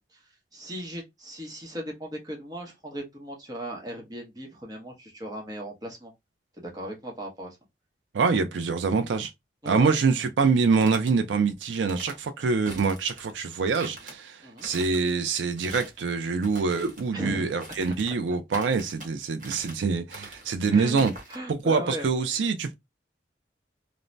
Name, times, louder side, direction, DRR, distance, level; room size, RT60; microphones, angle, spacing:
voice 1, 0.0-6.1 6.6-7.6 9.6-9.9 14.4-14.7 17.1-17.6 20.7-21.0 21.3-22.1, equal, 20° right, 0.7 m, -37 dB
voice 2, 8.1-9.3 9.7-21.1 21.5-22.7, right 5 dB, 80° right, 0.4 m, -25 dB
sound 1, 10.5-11.1 11.7-12.2 12.7-13.3 13.7-14.1 14.6-15.1 15.5-16.0 16.4-17.1 17.6-18.2 18.5-19.1 19.4-19.8 20.1-20.5 21.0-21.4, right 2 dB, 45° right, 1.0 m, -43 dB
2.5 x 2.0 x 3.1 m
head